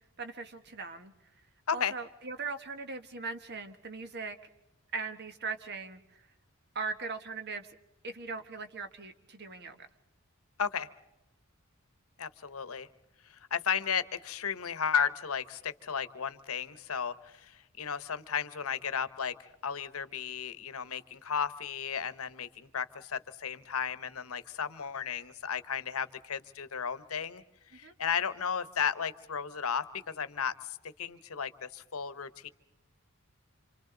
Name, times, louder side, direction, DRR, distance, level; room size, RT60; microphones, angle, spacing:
voice 1, 0.2-1.1 1.7-4.4 4.9-6.3 6.7-7.7 8.0-9.9 27.8-27.9, right 4 dB, 50° right, 8 dB, 1.4 m, -39 dB
voice 2, 12.2-12.9 13.2-27.4 27.7-32.5, left 7 dB, 80° left, 14 dB, 1.0 m, -34 dB
27.5 x 27.0 x 3.9 m, 0.96 s
head